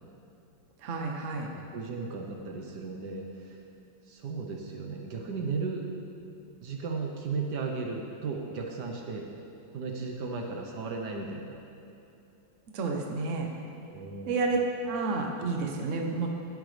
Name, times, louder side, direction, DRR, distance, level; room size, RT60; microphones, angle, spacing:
voice 1, 0.8-1.5 12.7-13.5 14.3-14.6 14.8-16.3, right 3 dB, 50° right, 1 dB, 1.2 m, -30 dB
voice 2, 1.5-3.6 4.1-5.8 6.6-9.3 9.7-11.5 13.9-14.3, right 4 dB, 70° right, 1 dB, 1.5 m, -35 dB
15.0 x 10.5 x 3.4 m, 2.8 s
omnidirectional pair, 2.0 m